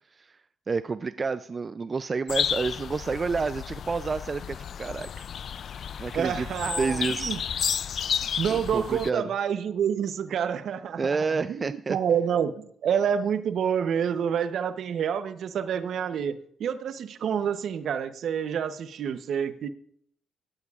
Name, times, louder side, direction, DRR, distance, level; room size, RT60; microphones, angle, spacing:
voice 1, 0.7-5.3 6.0-6.5 6.8-7.4 7.8-8.0 8.5-9.3 11.0-12.0, right 4 dB, 35° right, 0.3 m, -29 dB
sound 1, 2.3-9.1, left 8 dB, 60° left, 0.3 m, -32 dB
voice 2, 6.1-7.4 8.4-19.7, right 8 dB, 65° right, 0.8 m, -28 dB
16.5 x 13.5 x 2.4 m
cardioid pair, 90°, 0 cm